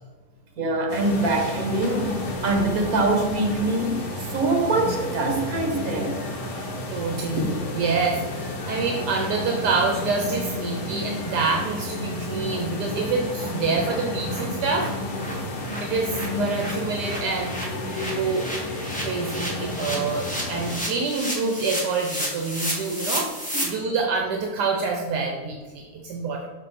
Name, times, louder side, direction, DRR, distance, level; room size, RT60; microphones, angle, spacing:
voice 1, 0.6-6.2 23.5-23.8, right 2 dB, 60° right, 3 dB, 1.6 m, -24 dB
sound 1, 0.9-20.8, left 1 dB, 60° left, 1.6 m, -31 dB
voice 2, 6.9-14.9 15.8-17.5 18.1-18.4 19.0-23.3 23.6-26.4, right 4 dB, 75° right, 1 dB, 1.3 m, -27 dB
sound 2, 10.7-10.8 11.1-11.2 11.5-11.6 12.0-12.1 12.4-12.6 12.9-13.0 13.3-13.5 13.7-23.6, equal, 5° left, 1.6 m, -33 dB
6.6 x 5.6 x 4.2 m, 1.4 s
omnidirectional pair, 1.8 m